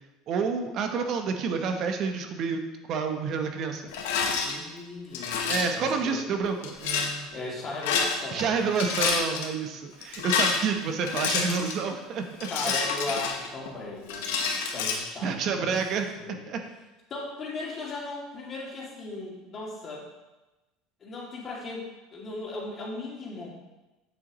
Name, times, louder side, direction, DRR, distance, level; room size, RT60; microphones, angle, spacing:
voice 1, 0.3-2.6 2.9-3.8 5.5-7.3 8.3-12.5 15.2-16.6, right 5 dB, 50° right, 5 dB, 0.9 m, -29 dB
Rattle, 3.9-4.5 5.1-5.8 6.6-7.1 7.7-8.4 8.7-9.5 10.0-11.8 12.4-13.7 14.1-15.0, left 5 dB, 80° left, 0.9 m, -28 dB
voice 2, 4.4-6.3 7.3-9.0 12.5-14.3 14.7-15.7 16.2-16.5 17.1-20.0 21.0-23.5, left 2 dB, 35° left, -3 dB, 2.4 m, -37 dB
8.1 x 6.7 x 3.1 m, 1.1 s
supercardioid pair, 100°, 0 cm